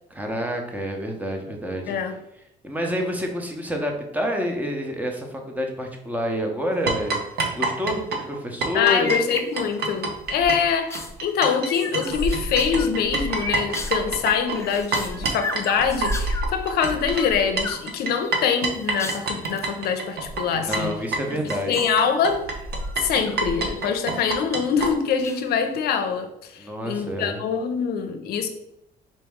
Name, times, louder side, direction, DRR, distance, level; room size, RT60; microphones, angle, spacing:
voice 1, 0.1-2.0 2.6-7.2 7.5-9.2 20.5-21.7 26.6-27.4, equal, 10° right, 2 dB, 0.8 m, -28 dB
sound 1, 6.9-11.7 11.9-24.9, right 3 dB, 70° right, 0.8 m, -27 dB
voice 2, 8.7-21.0 21.4-22.5 23.0-28.5, left 6 dB, 70° left, 7 dB, 0.6 m, -24 dB
sound 2, 8.8-10.0 10.4-16.5 16.9-17.8 18.2-19.7 20.5-21.0 21.4-23.4 23.7-24.3 25.2-25.8, left 3 dB, 15° left, 0.4 m, -35 dB
4.2 x 3.0 x 3.5 m, 0.82 s
cardioid pair, 110°, 17 cm